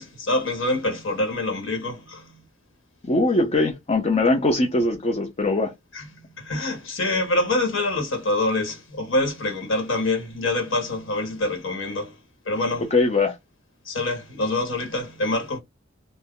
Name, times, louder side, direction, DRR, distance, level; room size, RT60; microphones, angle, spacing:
voice 1, 0.0-2.3 5.9-6.0 6.4-12.1 12.4-12.9 13.9-15.6, left 2 dB, 75° left, 1.4 m, -25 dB
voice 2, 3.0-5.7 12.9-13.4, left 2 dB, 30° left, 0.5 m, -21 dB
2.6 x 2.1 x 3.6 m
head